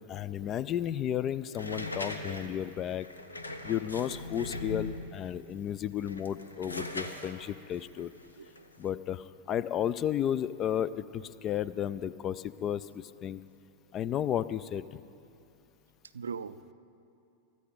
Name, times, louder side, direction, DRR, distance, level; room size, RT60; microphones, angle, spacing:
voice 1, 0.1-3.1 3.6-8.1 8.8-13.4 13.9-15.0, left 10 dB, 30° left, 17 dB, 0.4 m, -33 dB
sound 1, 1.5-5.2 5.9-8.9, left 2 dB, 80° left, 0.8 m, -40 dB
voice 2, 8.4-8.7 16.1-16.7, right 6 dB, 70° right, 14 dB, 0.4 m, -40 dB
23.0 x 13.5 x 3.9 m, 2.6 s
figure-of-eight pair, 90°, 0 cm